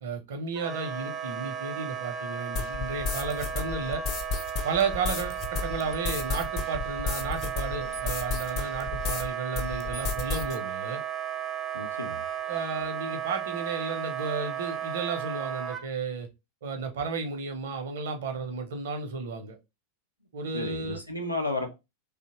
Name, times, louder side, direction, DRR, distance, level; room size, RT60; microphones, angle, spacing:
voice 1, 0.0-4.0 4.6-11.0 12.5-16.3 16.6-19.6 20.3-21.0, right 5 dB, 60° right, 0.6 m, -33 dB
Wind instrument woodwind instrument, 0.6-15.8, right 9 dB, 20° right, 0.3 m, -35 dB
sound 1, 2.6-9.3 9.6-10.6, left 5 dB, 35° left, 0.6 m, -33 dB
voice 2, 11.7-12.2 20.5-21.8, left 2 dB, 90° left, 0.6 m, -32 dB
2.7 x 2.1 x 2.8 m
figure-of-eight pair, 90°, 0 cm